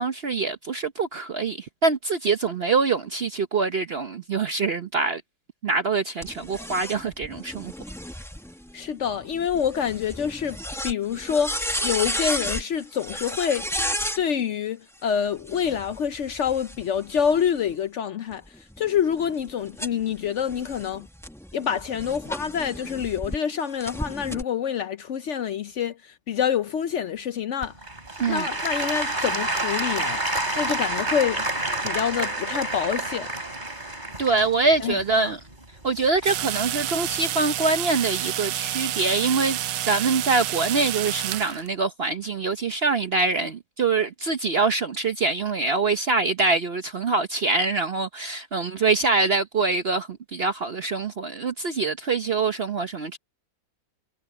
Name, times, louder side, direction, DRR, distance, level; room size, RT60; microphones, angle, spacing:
voice 1, 0.0-5.2 5.6-7.7 28.2-28.5 34.2-35.4 35.8-53.2, right 4 dB, 50° right, 0.8 m, -24 dB
sound 1, 6.2-14.2 15.4-17.7 18.3-23.4 23.8-24.4, equal, ahead, 0.7 m, -33 dB
voice 2, 8.7-10.6 10.8-13.7 14.2-18.4 18.8-21.1 21.5-27.7 28.3-31.5 31.8-33.3 34.8-35.3, left 8 dB, 70° left, 0.7 m, -27 dB
Applause / Crowd, 27.6-36.5 37.1-37.2, right 1 dB, 25° right, 3.7 m, -29 dB
sound 2, 36.2-41.7, right 13 dB, 80° right, 1.3 m, -29 dB
omnidirectional pair, 1.9 m